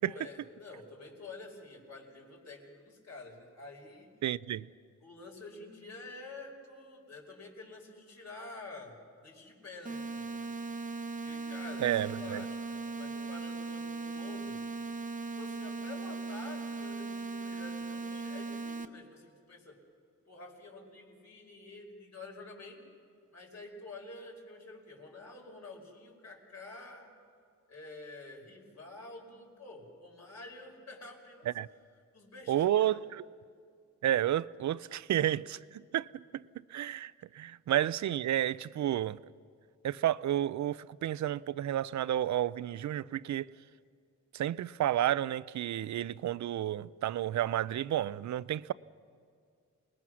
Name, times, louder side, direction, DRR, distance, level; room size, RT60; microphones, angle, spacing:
voice 1, 0.0-4.1 5.0-10.5 11.2-14.6 15.4-19.8 20.3-22.8 23.3-27.1 27.7-31.5 32.1-33.1, left 2 dB, 60° left, 5.3 m, -49 dB
voice 2, 4.2-4.7 11.8-12.4 31.5-31.7 32.5-33.2 34.0-36.4 36.7-39.2 39.8-43.5 44.3-48.7, right 12 dB, 70° right, 0.5 m, -31 dB
sound 1, 9.8-18.8, right 3 dB, 25° right, 0.9 m, -38 dB
28.0 x 20.5 x 6.3 m
cardioid pair, 95°, 30 cm